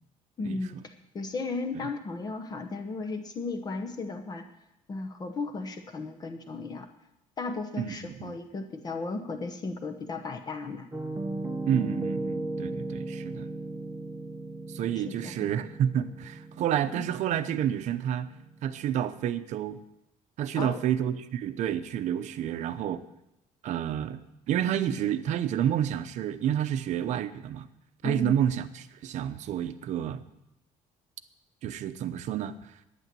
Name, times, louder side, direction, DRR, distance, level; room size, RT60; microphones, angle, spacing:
voice 1, 0.4-4.4 4.9-6.9 7.4-10.9 15.0-15.4 16.9-17.0 20.6-20.8 28.0-28.4, left 3 dB, 30° left, 7 dB, 0.9 m, -35 dB
voice 2, 7.8-8.4 11.7-13.5 14.7-18.3 18.6-19.8 20.4-23.0 23.6-24.2 24.5-27.7 28.0-30.2 31.6-32.5, right 10 dB, 60° right, 11 dB, 0.8 m, -29 dB
Piano, 10.9-18.8, right 2 dB, 10° right, 1.1 m, -36 dB
11.0 x 9.7 x 7.5 m, 0.89 s
cardioid pair, 160°, 13 cm